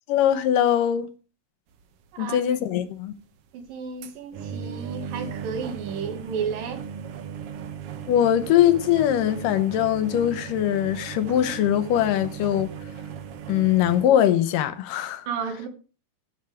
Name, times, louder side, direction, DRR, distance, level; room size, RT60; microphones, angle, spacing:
voice 1, 0.1-1.1 2.2-3.1 8.1-12.7 13.5-15.3, left 11 dB, 80° left, 2.5 m, -21 dB
sound 1, 1.7-1.8 2.3-2.4 3.0-3.1 3.6-14.1, right 8 dB, 70° right, 1.3 m, -37 dB
voice 2, 2.1-2.4 3.5-6.8 15.3-15.7, right 6 dB, 90° right, 3.4 m, -32 dB
10.5 x 9.0 x 4.9 m
omnidirectional pair, 3.9 m